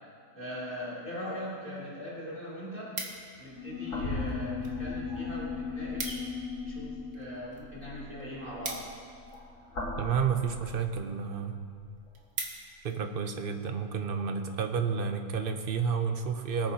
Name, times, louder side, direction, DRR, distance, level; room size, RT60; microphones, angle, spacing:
voice 1, 0.3-3.0 3.4-6.2 6.6-8.8, equal, 25° right, -7 dB, 3.0 m, -40 dB
sound 1, 1.8-1.9 2.2-3.6 4.3-4.8 5.1-5.2 5.5-5.6 5.8-6.4 6.8-9.6 10.3-10.7 11.2-11.3 11.6-11.7 12.0-13.0 13.5-13.7, right 3 dB, 70° right, 1.8 m, -41 dB
sound 2, 3.2-11.5 12.1-12.2 14.2-14.3, left 1 dB, 70° left, 2.8 m, -41 dB
sound 3, 3.5-9.4, left 6 dB, 45° left, 2.5 m, -38 dB
voice 2, 10.0-11.6 12.8-16.7, right 6 dB, 50° right, 6 dB, 0.7 m, -31 dB
21.5 x 9.3 x 2.8 m, 2.2 s
omnidirectional pair, 1.7 m